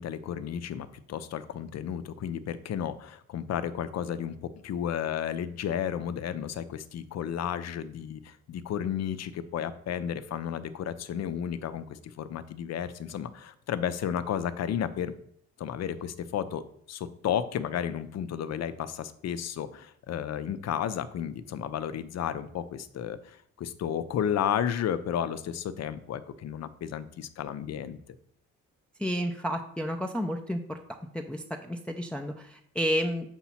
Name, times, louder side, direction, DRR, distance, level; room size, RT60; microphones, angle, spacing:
voice 1, 0.0-15.1 15.6-28.0, left 9 dB, 60° left, 13 dB, 0.6 m, -33 dB
voice 2, 29.0-30.8 31.1-33.3, equal, 5° left, 3 dB, 0.5 m, -31 dB
7.1 x 2.9 x 5.7 m, 0.67 s
cardioid pair, 90°, 30 cm